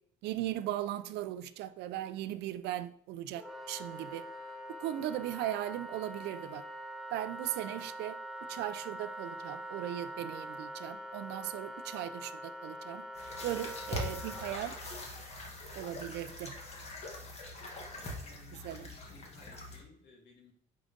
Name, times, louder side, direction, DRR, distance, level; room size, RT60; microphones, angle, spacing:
voice 1, 0.2-4.2 4.8-6.6 7.1-8.2 8.5-13.0 13.4-14.8 15.8-16.5 18.6-18.9, right 13 dB, 85° right, 13 dB, 0.5 m, -38 dB
Wind instrument woodwind instrument, 3.3-14.6, right 1 dB, ahead, 0.8 m, -44 dB
sound 1, 13.1-19.8, left 2 dB, 40° left, 1.5 m, -43 dB
voice 2, 18.2-20.5, left 3 dB, 70° left, 1 dB, 1.9 m, -58 dB
4.8 x 3.8 x 5.1 m, 0.68 s
cardioid pair, 110°, 17 cm